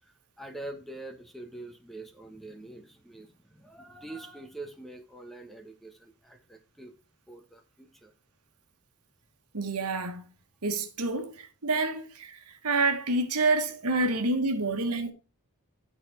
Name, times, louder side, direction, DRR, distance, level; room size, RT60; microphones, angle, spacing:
voice 1, 0.1-6.9 7.3-8.1, right 2 dB, ahead, 1.1 m, -45 dB
voice 2, 9.5-10.3 10.6-15.1, right 2 dB, 85° right, 1.4 m, -28 dB
12.0 x 4.2 x 4.8 m
head